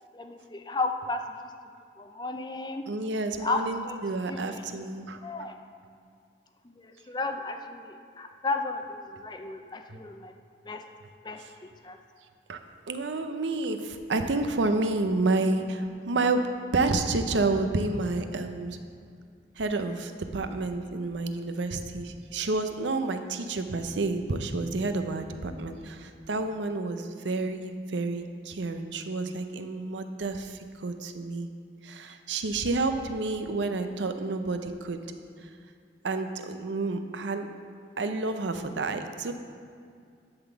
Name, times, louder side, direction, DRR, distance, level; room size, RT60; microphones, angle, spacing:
voice 1, 0.1-1.2 2.0-2.8 3.4-4.0 4.3-4.9 5.2-5.6 6.6-10.3 10.7-10.8 11.2-12.0, left 3 dB, 25° left, 5 dB, 0.5 m, -34 dB
voice 2, 2.9-5.2 9.9-10.0 11.4-11.5 12.5-12.6 12.9-18.8 19.6-31.5 31.8-35.0 35.4-35.5 36.0-37.5 38.0-39.3, right 3 dB, 85° right, 7 dB, 0.6 m, -30 dB
10.5 x 4.0 x 7.1 m, 2.3 s
head